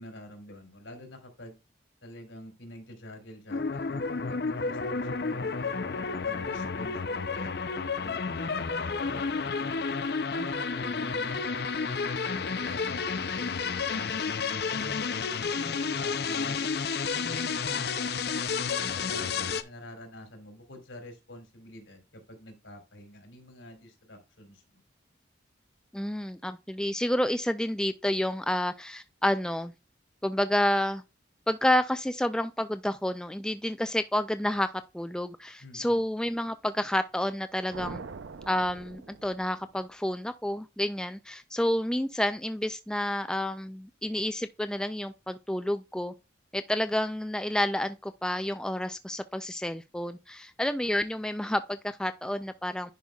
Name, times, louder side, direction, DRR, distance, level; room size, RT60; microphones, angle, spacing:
voice 1, 0.0-1.6 2.0-5.8 6.2-7.6 7.9-9.8 10.3-12.1 12.5-15.0 15.4-16.7 17.1-22.0 22.3-24.8 35.6-36.0, left 1 dB, 90° left, 3.3 m, -46 dB
sound 1, 3.5-19.6, left 5 dB, 55° left, 0.5 m, -31 dB
voice 2, 25.9-29.7 30.2-31.0 31.5-38.0 38.5-46.1 46.5-52.9, left 1 dB, 5° left, 0.3 m, -29 dB
sound 2, 37.7-39.9, right 4 dB, 85° right, 0.6 m, -43 dB
10.5 x 5.4 x 2.3 m
head